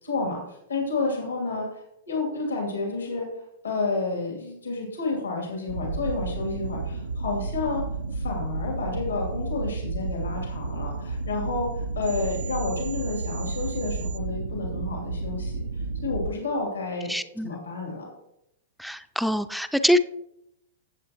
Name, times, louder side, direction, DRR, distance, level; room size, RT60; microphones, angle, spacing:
voice 1, 0.0-3.3 3.6-7.8 8.1-17.1 17.4-18.1, left 3 dB, 90° left, -1 dB, 2.7 m, -30 dB
sound 1, 5.7-16.3, right 3 dB, 85° right, 0.5 m, -31 dB
voice 2, 17.1-17.5 18.8-20.0, equal, ahead, 9 dB, 0.4 m, -24 dB
15.0 x 7.6 x 3.0 m, 0.82 s
hypercardioid pair, 115°, 0 cm